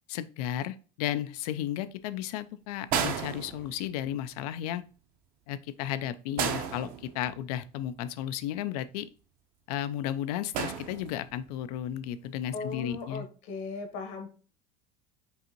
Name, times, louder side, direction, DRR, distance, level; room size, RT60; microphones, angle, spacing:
voice 1, 0.1-4.8 5.5-9.1 9.7-13.3, left 11 dB, 85° left, 14 dB, 0.4 m, -34 dB
sound 1, 2.9-4.1 6.4-7.6 10.5-11.5 12.7-12.9, right 7 dB, 50° right, 0.6 m, -33 dB
voice 2, 12.5-14.3, left 4 dB, 65° left, 6 dB, 1.1 m, -37 dB
5.4 x 2.6 x 2.8 m, 0.36 s
supercardioid pair, 140°, 19 cm